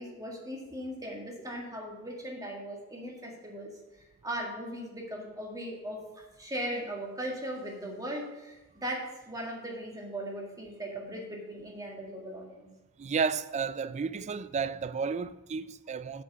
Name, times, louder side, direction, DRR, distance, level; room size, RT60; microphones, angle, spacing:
voice 1, 0.0-3.7 4.2-12.7, right 1 dB, 15° right, 1.8 m, -38 dB
voice 2, 13.0-16.2, right 5 dB, 35° right, 0.3 m, -32 dB
8.0 x 6.3 x 6.2 m
head